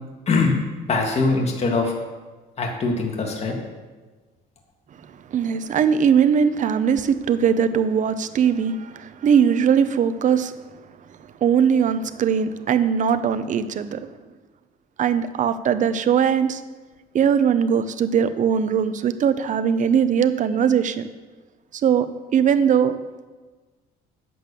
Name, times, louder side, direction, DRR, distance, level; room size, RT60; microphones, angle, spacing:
voice 1, 0.3-0.6 0.9-1.9 2.6-3.6, left 3 dB, 40° left, 1 dB, 2.0 m, -22 dB
voice 2, 5.3-10.5 11.4-14.1 15.0-16.6 17.1-21.1 21.7-22.1 22.3-23.0, right 7 dB, 50° right, 11 dB, 0.8 m, -20 dB
8.7 x 7.8 x 6.8 m, 1.3 s
cardioid pair, 110°, 17 cm